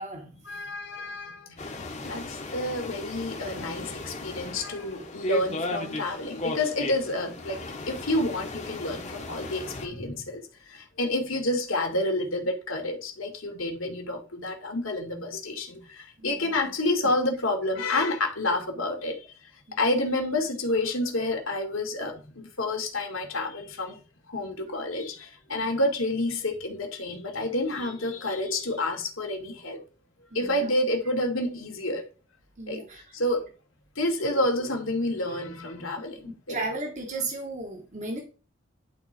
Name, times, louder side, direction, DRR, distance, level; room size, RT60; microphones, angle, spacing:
voice 1, 0.5-1.5 2.1-7.6 7.9-19.2 19.8-24.0 24.3-29.8 30.3-32.0 32.7-32.8 33.1-33.4 34.0-36.6 37.1-37.2, left 1 dB, 75° left, 2.1 m, -29 dB
sound 1, 1.6-9.9, left 2 dB, 35° left, 1.2 m, -36 dB
voice 2, 16.2-16.6 19.7-19.8 25.5-25.6 30.3-30.7 32.6-33.0 36.2-38.2, right 2 dB, 35° right, 1.5 m, -35 dB
10.5 x 4.0 x 4.4 m
head